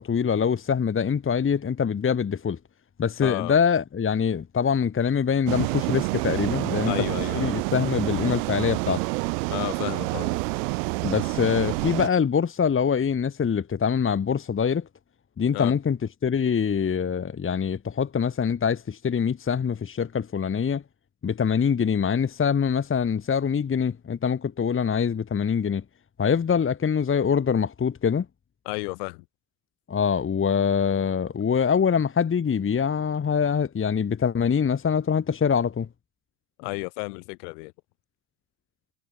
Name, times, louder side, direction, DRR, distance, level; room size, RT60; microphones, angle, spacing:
voice 1, 0.0-2.6 3.0-6.9 7.3-9.0 11.0-14.9 15.4-16.0 16.2-20.8 21.2-25.8 26.2-28.3 29.9-35.9, left 7 dB, 25° left, 2.0 m, -24 dB
voice 2, 3.2-3.6 6.8-7.5 9.5-10.4 15.5-15.7 28.6-29.2 36.6-37.7, left 32 dB, 70° left, 3.0 m, -32 dB
sound 1, 5.5-12.1, right 27 dB, 70° right, 2.7 m, -28 dB
hypercardioid pair, 80°, 49 cm